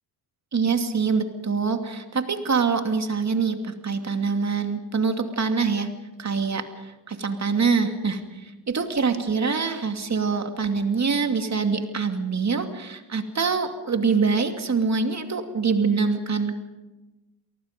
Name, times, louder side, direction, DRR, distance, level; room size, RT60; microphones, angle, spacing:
voice 1, 0.5-5.9 6.2-16.6, right 5 dB, 35° right, 6 dB, 2.6 m, -25 dB
28.5 x 19.0 x 5.3 m, 1.1 s
supercardioid pair, 70°, 48 cm